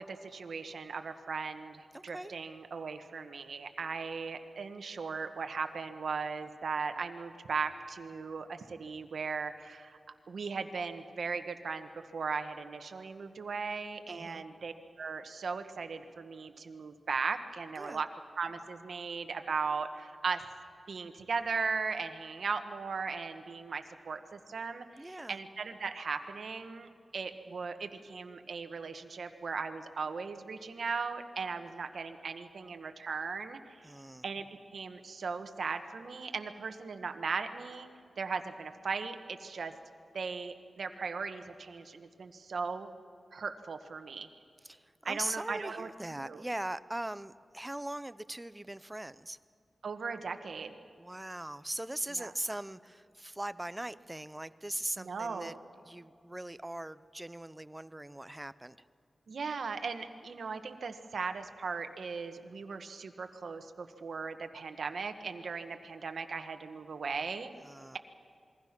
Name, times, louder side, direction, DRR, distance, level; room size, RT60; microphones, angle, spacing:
voice 1, 0.0-10.0 10.3-18.1 18.4-20.4 20.9-33.9 34.2-34.5 34.7-37.9 38.2-39.7 40.1-42.9 43.3-44.3 45.0-46.4 49.8-50.7 52.2-52.3 55.0-55.6 59.3-67.5, right 5 dB, 80° right, 7 dB, 1.4 m, -38 dB
voice 2, 1.9-2.3 14.1-14.4 17.8-18.0 25.0-25.4 33.8-34.2 44.6-49.4 51.0-55.6 55.8-58.9 67.6-68.0, right 1 dB, 15° right, 15 dB, 0.5 m, -40 dB
27.5 x 22.0 x 6.0 m, 2.3 s
wide cardioid pair, 120°, 0 cm